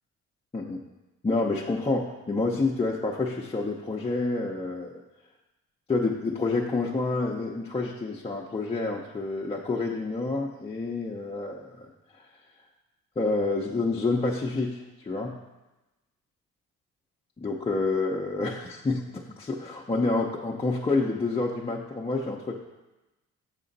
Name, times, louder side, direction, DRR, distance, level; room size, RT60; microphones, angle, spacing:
voice 1, 1.2-4.9 5.9-12.3 13.2-15.3 17.4-22.5, left 3 dB, 20° left, -2 dB, 0.6 m, -28 dB
6.6 x 4.9 x 4.0 m, 1.0 s
cardioid pair, 90°, 30 cm